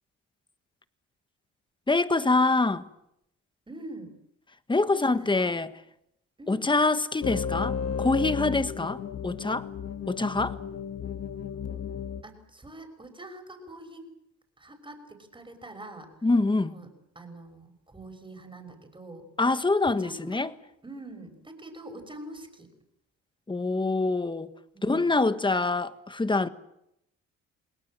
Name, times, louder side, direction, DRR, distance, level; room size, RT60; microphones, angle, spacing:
voice 1, 1.9-2.9 4.7-5.7 6.5-9.7 10.1-10.6 16.2-16.7 19.4-20.5 23.5-24.5 24.8-26.5, left 3 dB, 15° left, 1.4 m, -25 dB
voice 2, 3.7-4.1 4.9-5.5 6.4-6.7 12.2-14.1 14.6-16.3 16.6-16.9 17.1-19.3 19.8-20.4 20.8-22.7 24.7-25.1, right 2 dB, 15° right, 6.0 m, -45 dB
sound 1, 7.2-12.2, left 7 dB, 55° left, 1.4 m, -33 dB
29.0 x 20.0 x 7.7 m
cardioid pair, 90°, 30 cm